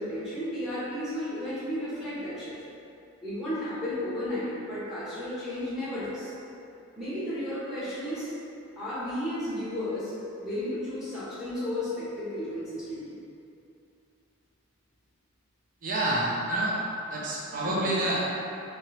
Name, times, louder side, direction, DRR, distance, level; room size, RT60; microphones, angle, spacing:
voice 1, 0.0-2.5 3.2-6.3 7.0-8.3 8.8-10.1 10.4-13.2 17.5-17.9, left 1 dB, 5° right, -12 dB, 0.8 m, -33 dB
voice 2, 15.8-16.7 17.1-18.3, right 1 dB, 35° right, -5 dB, 0.5 m, -28 dB
3.2 x 2.8 x 3.0 m, 2.7 s
head